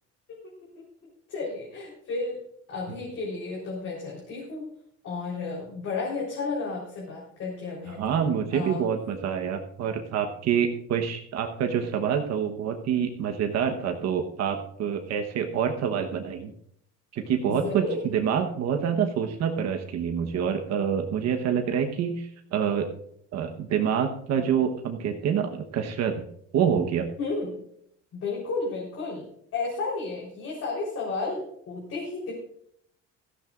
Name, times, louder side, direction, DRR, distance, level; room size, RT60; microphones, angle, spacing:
voice 1, 0.3-0.8 1.3-2.4 2.7-4.7 5.0-8.1 8.5-8.8 17.5-18.0 27.2-27.6 28.1-32.3, left 3 dB, 50° left, -4 dB, 3.9 m, -32 dB
voice 2, 7.9-16.5 17.1-17.9 18.1-22.9 23.3-26.2 26.5-27.1, right 7 dB, 60° right, 4 dB, 1.1 m, -27 dB
16.5 x 14.0 x 2.5 m, 0.69 s
cardioid pair, 160°, 29 cm